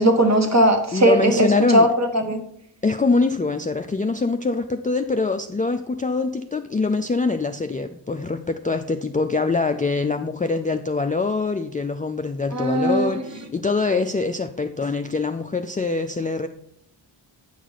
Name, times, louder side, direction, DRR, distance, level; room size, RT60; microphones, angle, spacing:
voice 1, 0.0-2.4 12.5-13.2, right 1 dB, 35° right, 5 dB, 1.3 m, -18 dB
voice 2, 0.9-1.9 2.8-16.5, left 3 dB, 20° left, 6 dB, 0.4 m, -24 dB
8.9 x 4.7 x 4.0 m, 0.70 s
cardioid pair, 50°, 49 cm